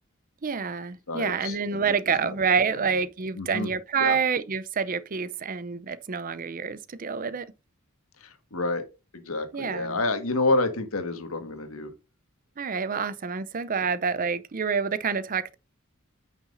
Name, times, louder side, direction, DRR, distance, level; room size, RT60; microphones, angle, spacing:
voice 1, 0.4-7.5 9.5-10.0 12.6-15.6, right 6 dB, 40° right, 0.6 m, -27 dB
voice 2, 1.1-1.9 2.2-2.3 2.8-2.9 3.3-3.7 4.0-4.2 8.2-8.8 9.1-11.9, left 2 dB, 80° left, 1.6 m, -29 dB
9.5 x 6.0 x 2.6 m
head